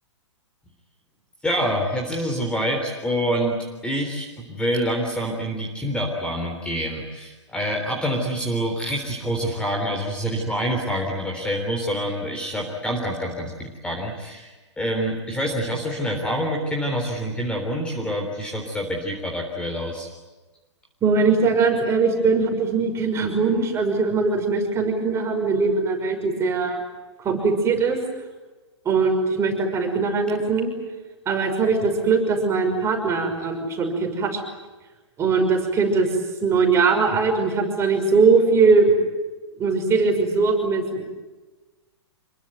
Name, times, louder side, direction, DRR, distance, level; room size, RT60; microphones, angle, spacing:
voice 1, 1.4-3.6 3.8-20.1, equal, 5° left, 1 dB, 3.6 m, -26 dB
voice 2, 21.0-26.8 27.2-28.0 28.8-30.7 31.3-34.4 35.2-36.1 36.4-38.9 39.6-41.1, right 4 dB, 15° right, 3 dB, 5.9 m, -21 dB
27.0 x 23.0 x 9.3 m, 1.2 s
figure-of-eight pair, 115°, 15 cm